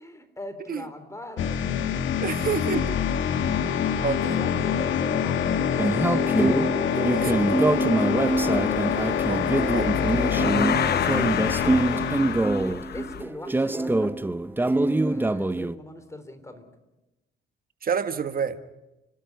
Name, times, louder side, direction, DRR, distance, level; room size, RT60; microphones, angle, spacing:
voice 1, 0.0-1.7 2.0-2.7 4.3-5.7 9.8-11.2 12.3-14.2 15.0-16.6, left 1 dB, 15° left, 9 dB, 3.6 m, -41 dB
sound 1, 1.4-12.4, left 8 dB, 75° left, 1.6 m, -26 dB
voice 2, 2.2-3.0 3.6-3.7 4.0-4.4 7.1-7.8 9.3-9.9 17.8-18.6, right 6 dB, 45° right, 10 dB, 1.6 m, -29 dB
sound 2, 5.8-15.8, right 2 dB, 10° right, 0.7 m, -24 dB
sound 3, 6.9-7.2 7.8-13.2, left 9 dB, 55° left, 1.0 m, -31 dB
30.0 x 12.5 x 9.5 m, 1.0 s
cardioid pair, 90°, 20 cm